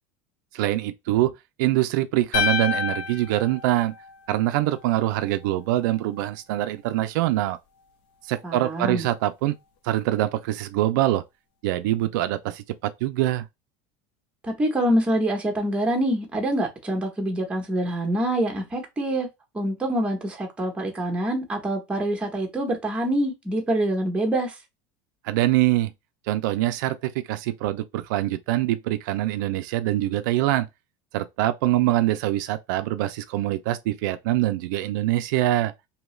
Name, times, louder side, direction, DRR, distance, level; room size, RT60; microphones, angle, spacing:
voice 1, 0.5-1.3 1.6-3.9 4.3-7.6 8.3-9.5 9.8-11.2 11.6-13.5 25.2-25.9 26.3-30.7 31.1-35.7, right 15 dB, 85° right, 0.4 m, -24 dB
sound 1, 2.3-4.6, left 6 dB, 60° left, 0.6 m, -28 dB
voice 2, 8.4-9.1 14.4-19.3 19.5-24.5, right 1 dB, 10° right, 1.0 m, -25 dB
2.8 x 2.3 x 3.1 m
cardioid pair, 150°, 10 cm